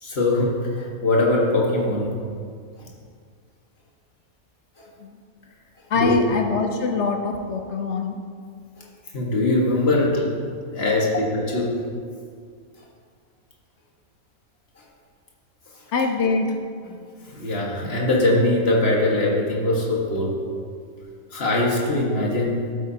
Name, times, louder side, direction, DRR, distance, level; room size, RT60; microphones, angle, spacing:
voice 1, 0.0-2.1 2.8-2.9 4.8-4.9 5.9-6.2 9.1-11.8 14.8-14.9 16.8-17.0 17.3-20.4 21.3-22.7, left 2 dB, 45° left, -3 dB, 1.7 m, -22 dB
voice 2, 5.9-8.2 10.9-11.0 15.9-16.6, left 4 dB, 60° left, 4 dB, 0.8 m, -24 dB
12.0 x 8.7 x 2.8 m, 2.1 s
omnidirectional pair, 1.5 m